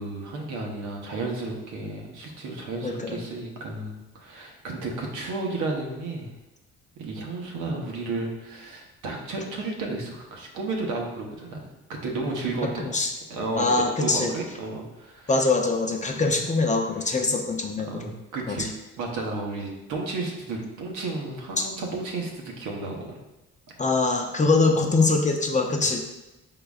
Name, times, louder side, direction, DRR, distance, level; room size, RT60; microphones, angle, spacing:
voice 1, 0.0-6.3 7.0-13.0 13.3-15.3 16.1-16.4 17.1-17.2 17.9-18.7 19.0-23.2, right 3 dB, 85° right, 0 dB, 0.9 m, -33 dB
voice 2, 2.8-3.2 12.8-13.1 13.5-14.3 15.3-18.1 18.5-18.6 21.6-21.7 23.8-26.0, left 3 dB, 25° left, 3 dB, 0.6 m, -23 dB
4.8 x 3.8 x 2.3 m, 1.0 s
cardioid pair, 90°, 30 cm